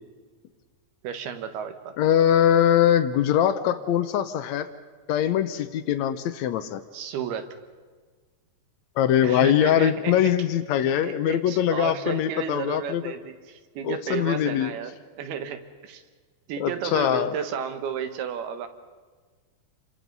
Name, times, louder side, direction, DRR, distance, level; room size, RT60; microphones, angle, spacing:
voice 1, 1.0-1.9 6.9-7.6 9.2-10.3 10.7-16.0 16.5-18.7, right 7 dB, 90° right, 8 dB, 3.4 m, -33 dB
voice 2, 2.0-4.7 5.1-6.8 9.0-13.0 13.8-14.7 16.6-17.3, left 10 dB, 85° left, 10 dB, 1.5 m, -22 dB
29.5 x 25.0 x 5.4 m, 1.5 s
omnidirectional pair, 4.3 m